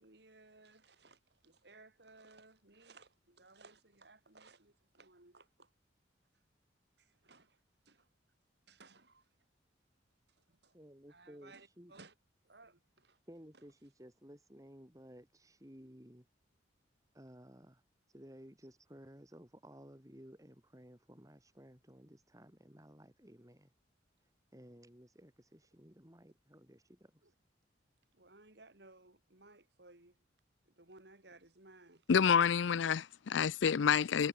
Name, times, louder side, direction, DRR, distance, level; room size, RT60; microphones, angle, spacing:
voice 1, 0.0-5.7 7.0-7.6 7.8-8.1 8.7-9.3 10.4-10.7 11.1-12.1 12.4-13.2 27.2-27.3 28.1-30.2 30.6-32.0, right 3 dB, 60° right, 3.2 m, -60 dB
voice 2, 10.7-11.9 13.3-16.3 17.1-17.8 18.1-23.7 24.2-27.3, equal, 20° right, 4.1 m, -56 dB
voice 3, 32.1-34.3, left 7 dB, 80° left, 0.5 m, -28 dB
head